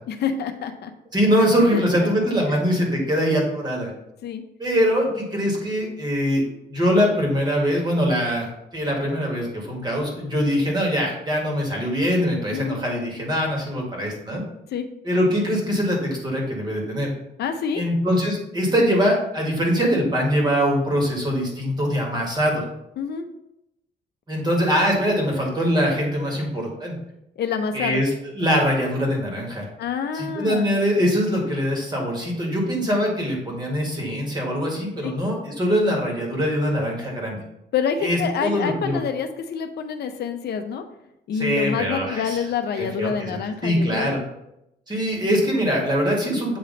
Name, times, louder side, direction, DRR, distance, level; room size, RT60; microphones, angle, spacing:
voice 1, 0.1-0.9 1.7-1.8 2.5-2.6 4.2-4.4 12.5-12.8 14.7-14.9 17.4-17.8 23.0-23.3 27.4-28.0 29.8-30.7 35.0-35.2 37.7-40.8 41.3-44.1, left 7 dB, 65° left, 7 dB, 0.6 m, -27 dB
voice 2, 1.1-3.9 4.6-6.4 6.7-8.5 8.7-14.4 15.0-17.1 17.7-22.7 24.3-27.0 27.7-28.1 28.3-29.7 30.1-37.4 38.0-39.0 41.3-42.4 42.8-44.2 44.9-46.6, equal, 25° right, -1 dB, 1.8 m, -23 dB
7.9 x 3.2 x 3.9 m, 0.84 s
cardioid pair, 135°, 18 cm